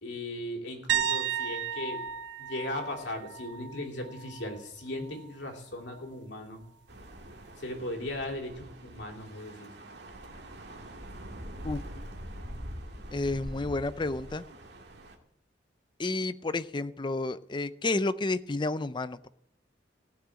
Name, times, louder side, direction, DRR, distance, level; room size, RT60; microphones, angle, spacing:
voice 1, 0.0-2.0 2.4-6.6 7.6-9.7, left 1 dB, 70° left, 2 dB, 2.7 m, -37 dB
sound 1, 0.9-4.6 5.0-5.3 8.2-8.3, right 8 dB, 85° right, 0.6 m, -34 dB
sound 2, 6.9-15.2, equal, 70° right, 2.0 m, -44 dB
voice 2, 13.1-14.4 16.0-19.3, left 2 dB, 25° left, 14 dB, 0.5 m, -31 dB
16.0 x 6.3 x 8.4 m, 0.75 s
head